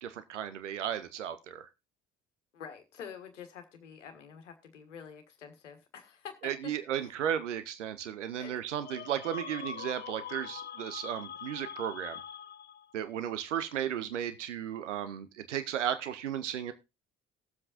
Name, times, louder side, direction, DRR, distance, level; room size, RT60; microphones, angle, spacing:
voice 1, 0.0-1.7 6.4-12.2 12.9-16.7, right 9 dB, 85° right, 12 dB, 0.7 m, -35 dB
voice 2, 2.5-6.7 8.4-8.5, left 7 dB, 85° left, 7 dB, 1.4 m, -47 dB
sound 1, 8.8-13.0, left 8 dB, 30° left, 0.6 m, -43 dB
19.0 x 7.6 x 2.6 m, 0.24 s
figure-of-eight pair, 50°, 35 cm